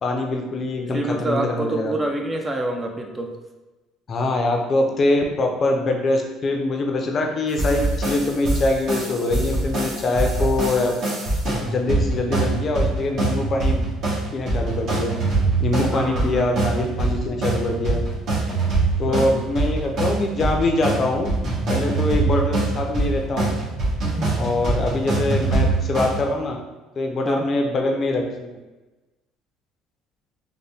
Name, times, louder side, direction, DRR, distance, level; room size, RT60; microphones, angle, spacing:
voice 1, 0.0-1.9 4.1-11.0 11.6-13.8 14.3-15.1 15.6-18.0 19.0-21.3 21.7-23.5 24.4-26.6 27.0-28.6, left 2 dB, 40° left, 2 dB, 0.5 m, -23 dB
voice 2, 0.9-3.4 15.9-16.4 19.1-19.3 27.3-27.5, right 1 dB, 20° right, 3 dB, 0.4 m, -26 dB
sound 1, 7.6-26.2, right 2 dB, 55° right, 1.3 m, -24 dB
4.0 x 2.1 x 3.4 m, 1.1 s
cardioid pair, 110°, 0 cm